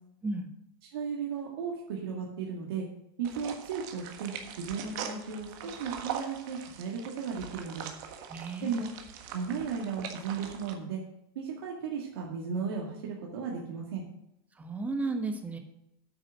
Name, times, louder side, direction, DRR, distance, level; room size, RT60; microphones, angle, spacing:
voice 1, 0.9-2.9 3.2-7.9 8.6-8.9 9.3-11.0 11.4-14.0, right 6 dB, 85° right, -2 dB, 2.1 m, -35 dB
sound 1, 3.2-10.7, right 8 dB, 55° right, 1.4 m, -42 dB
voice 2, 8.3-8.9 14.6-15.6, right 3 dB, 10° right, 6 dB, 1.2 m, -34 dB
9.1 x 6.2 x 6.4 m, 0.83 s
supercardioid pair, 145°, 12 cm